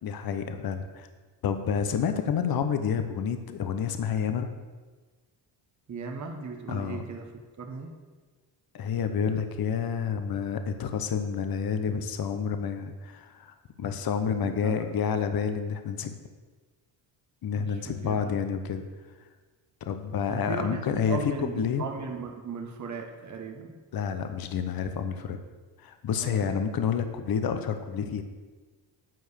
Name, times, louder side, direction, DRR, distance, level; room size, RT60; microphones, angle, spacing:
voice 1, 0.0-1.1 1.4-4.5 6.7-7.0 8.7-16.1 17.4-18.8 19.8-21.8 23.9-25.4 25.8-28.2, left 7 dB, 50° left, 8 dB, 1.0 m, -29 dB
voice 2, 5.9-8.0 14.4-14.8 17.5-18.3 20.3-23.8 26.2-26.5, right 4 dB, 35° right, 2 dB, 1.3 m, -37 dB
9.4 x 4.7 x 6.9 m, 1.3 s
cardioid pair, 80°, 48 cm